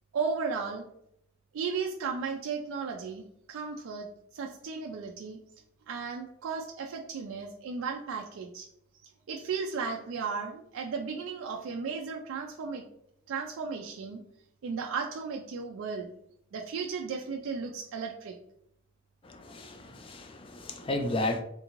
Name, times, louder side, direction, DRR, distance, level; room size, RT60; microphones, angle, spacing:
voice 1, 0.1-0.9 1.5-4.1 4.3-5.4 5.9-8.7 9.0-12.8 13.3-14.2 14.6-16.1 16.5-18.4, right 5 dB, 65° right, 2 dB, 0.3 m, -35 dB
voice 2, 19.2-21.4, left 2 dB, 25° left, 6 dB, 0.3 m, -33 dB
3.5 x 2.5 x 2.9 m, 0.74 s
head